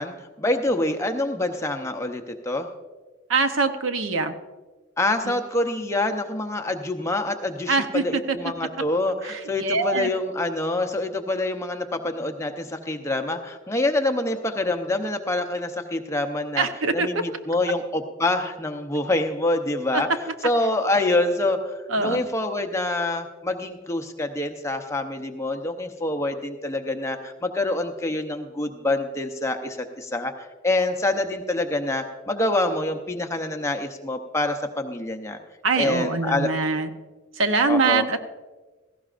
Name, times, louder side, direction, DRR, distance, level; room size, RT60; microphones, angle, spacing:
voice 1, 0.0-2.7 5.0-16.7 16.9-20.1 20.4-30.3 30.6-35.4 35.8-36.5 37.7-38.0, left 2 dB, 15° left, 5 dB, 0.7 m, -26 dB
voice 2, 3.3-4.4 5.2-5.4 7.7-8.4 9.2-10.1 16.6-17.2 19.9-20.0 21.9-22.2 35.6-36.9 37.4-38.2, right 3 dB, 70° right, 8 dB, 0.8 m, -23 dB
17.5 x 15.5 x 2.5 m, 1.3 s
head